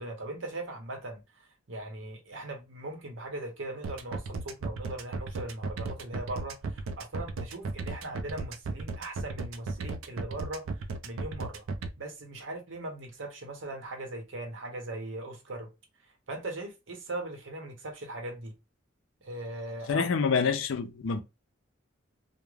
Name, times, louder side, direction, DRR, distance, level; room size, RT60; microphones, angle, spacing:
voice 1, 0.0-11.6 12.0-15.7 16.3-18.5 19.2-20.1, right 2 dB, 70° right, 0.8 m, -39 dB
sound 1, 3.8-11.9, right 3 dB, 85° right, 0.4 m, -35 dB
voice 2, 19.9-21.2, left 5 dB, 75° left, 0.4 m, -27 dB
2.3 x 2.1 x 3.1 m
head